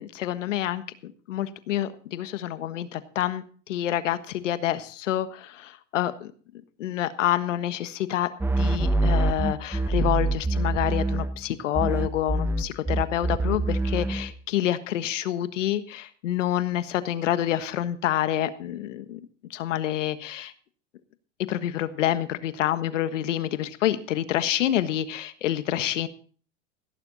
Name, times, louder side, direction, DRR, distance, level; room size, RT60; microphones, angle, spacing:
voice 1, 0.0-6.3 6.8-8.3 8.6-19.2 19.5-20.5 21.5-26.1, left 12 dB, 80° left, 12 dB, 1.5 m, -27 dB
sound 1, 8.4-11.5 11.7-14.3, right 2 dB, 5° right, 1.2 m, -25 dB
17.0 x 10.0 x 4.1 m, 0.43 s
hypercardioid pair, 120°, 36 cm